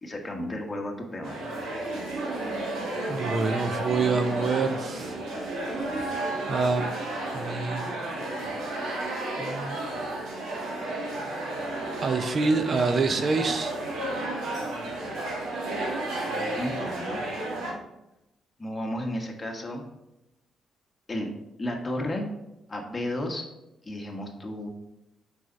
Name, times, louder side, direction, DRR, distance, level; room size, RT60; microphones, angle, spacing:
voice 1, 0.0-1.4 16.6-17.2 18.6-19.8 21.1-21.3 21.6-22.2 22.7-23.5 23.8-24.7, left 1 dB, 20° left, 1 dB, 1.5 m, -33 dB
sound 1, 1.2-17.7, right 2 dB, 80° right, 1.9 m, -32 dB
voice 2, 3.1-5.1 6.5-6.9 7.3-7.9 9.4-9.8 12.0-13.7, right 4 dB, 45° right, 8 dB, 0.6 m, -26 dB
6.2 x 5.5 x 4.0 m, 0.91 s
cardioid pair, 90°, 0 cm